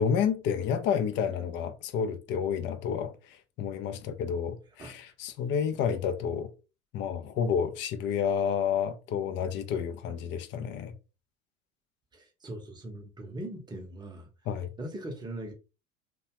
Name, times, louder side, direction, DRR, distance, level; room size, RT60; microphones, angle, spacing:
voice 1, 0.0-6.5 6.9-10.9 14.5-14.7, left 7 dB, 30° left, 0.4 m, -30 dB
voice 2, 12.1-14.3 14.8-15.5, right 1 dB, 10° right, 0.8 m, -40 dB
2.7 x 2.2 x 2.9 m
hypercardioid pair, 80°, 38 cm